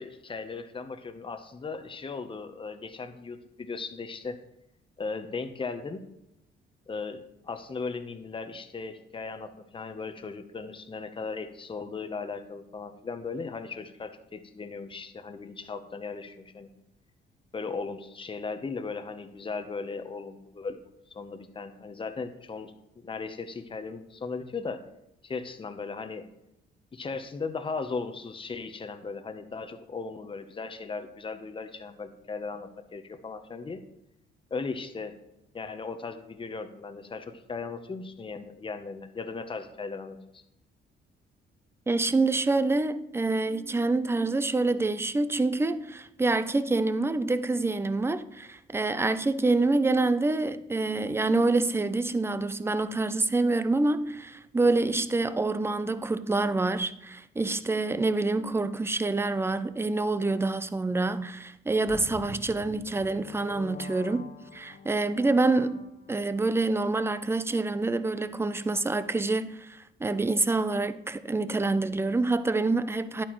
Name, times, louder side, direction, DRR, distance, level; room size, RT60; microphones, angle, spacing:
voice 1, 0.0-4.4 5.0-6.0 6.9-16.7 17.5-20.8 21.1-24.8 25.2-26.2 26.9-33.8 34.5-35.1 35.5-40.4, left 4 dB, 25° left, 0.9 m, -37 dB
voice 2, 41.9-73.2, right 3 dB, 10° right, 0.5 m, -27 dB
sound 1, 61.9-66.3, left 5 dB, 70° left, 1.1 m, -46 dB
11.0 x 8.6 x 3.1 m
cardioid pair, 90°, 20 cm